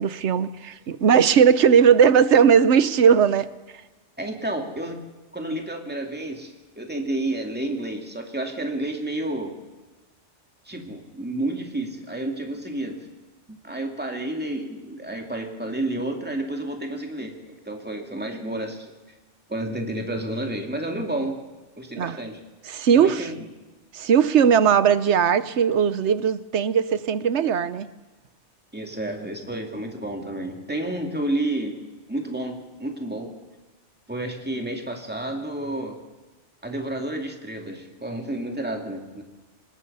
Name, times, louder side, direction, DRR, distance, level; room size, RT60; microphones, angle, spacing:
voice 1, 0.0-3.5 22.0-22.2 22.7-23.3 23.9-27.9, right 7 dB, 70° right, 1.1 m, -18 dB
voice 2, 4.2-5.0 5.3-9.5 10.7-13.0 13.5-18.9 19.5-21.4 21.8-22.4 22.9-23.4 28.7-33.4 34.1-36.0 36.6-39.2, right 1 dB, 10° right, 2.5 m, -30 dB
24.5 x 20.5 x 5.6 m
omnidirectional pair, 1.2 m